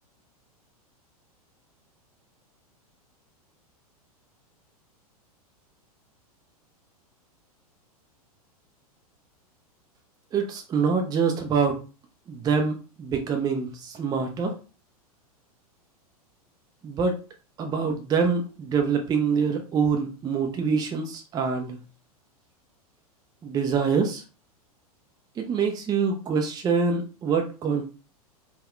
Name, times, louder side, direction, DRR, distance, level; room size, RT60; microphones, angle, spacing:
voice 1, 10.3-11.8 12.3-14.5 16.8-17.2 17.6-21.8 23.4-24.2 25.4-27.8, right 5 dB, 20° right, 4 dB, 0.5 m, -25 dB
3.5 x 2.2 x 2.3 m, 0.34 s
hypercardioid pair, 100°, 20 cm